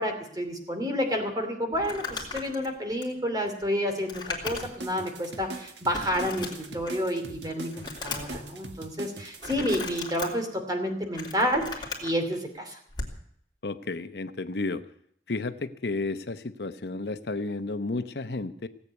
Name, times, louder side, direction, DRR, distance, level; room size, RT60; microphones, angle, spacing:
voice 1, 0.0-12.8, equal, 20° right, 5 dB, 2.7 m, -30 dB
Crumpling crinkling, 1.7-4.9 5.3-5.4 5.9-7.1 7.5-8.4 9.4-10.3 10.9-12.1 12.9-13.2, left 3 dB, 25° left, 3.2 m, -37 dB
sound 1, 4.5-10.0, right 2 dB, 85° right, 1.7 m, -42 dB
voice 2, 13.6-14.8 15.3-18.7, left 3 dB, 70° left, 10 dB, 0.8 m, -32 dB
17.5 x 8.3 x 9.4 m, 0.69 s
head